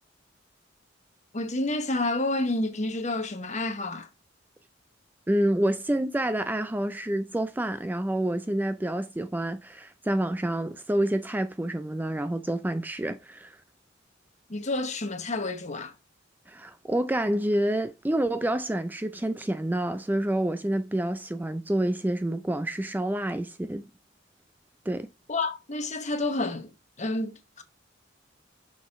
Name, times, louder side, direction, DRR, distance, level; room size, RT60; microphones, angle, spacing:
voice 1, 1.3-4.1 14.5-15.9 25.3-26.7 27.0-27.6, left 2 dB, 40° left, 1.1 m, -29 dB
voice 2, 5.3-13.6 16.5-23.8 24.9-25.1, right 1 dB, 10° right, 0.4 m, -28 dB
6.3 x 5.0 x 3.5 m
head